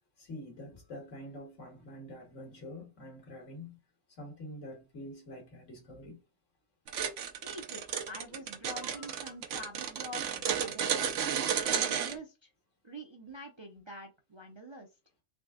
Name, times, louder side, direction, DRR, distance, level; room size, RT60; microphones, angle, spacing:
voice 1, 0.2-3.8 4.1-6.2 8.8-9.1 12.1-12.2, left 1 dB, 85° left, 1.7 m, -46 dB
sound 1, 6.9-12.2, right 8 dB, 80° right, 1.0 m, -32 dB
voice 2, 7.4-11.1 11.6-12.5 12.8-15.0, equal, 40° right, 0.4 m, -46 dB
3.7 x 3.4 x 2.3 m
omnidirectional pair, 1.3 m